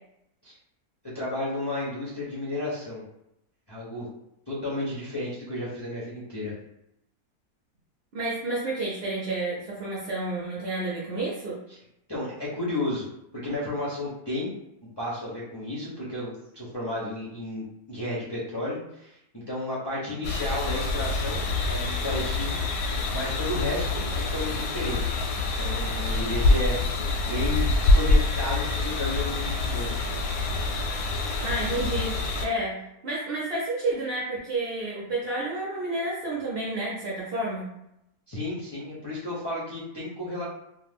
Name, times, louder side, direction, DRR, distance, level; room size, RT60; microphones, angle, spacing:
voice 1, 1.0-3.0 3.7-4.1 4.5-6.5 12.1-13.1 13.3-14.5 15.0-19.2 19.5-25.2 25.6-29.9 38.3-40.4, left 1 dB, 35° left, -8 dB, 0.4 m, -32 dB
voice 2, 8.1-11.6 31.4-37.7, right 2 dB, 55° right, -5 dB, 0.6 m, -30 dB
sound 1, 20.2-32.5, left 2 dB, 90° left, 1.1 m, -26 dB
2.4 x 2.2 x 3.3 m, 0.82 s
omnidirectional pair, 1.6 m